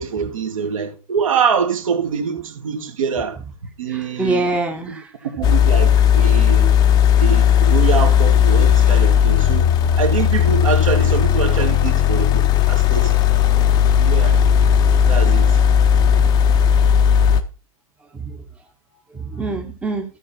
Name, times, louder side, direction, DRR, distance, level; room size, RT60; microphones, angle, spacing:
voice 1, 0.0-3.4 3.8-4.4 4.9-5.0 5.4-6.7 7.2-9.7 10.0-13.2 13.9-14.4 15.1-15.6, right 7 dB, 60° right, 2.1 m, -24 dB
voice 2, 3.9-5.1 11.5-11.7 18.3-18.4 19.2-20.0, right 2 dB, 5° right, 1.0 m, -24 dB
sound 1, 5.4-17.4, left 9 dB, 20° left, 0.8 m, -15 dB
13.0 x 5.7 x 4.4 m
figure-of-eight pair, 120°, 20 cm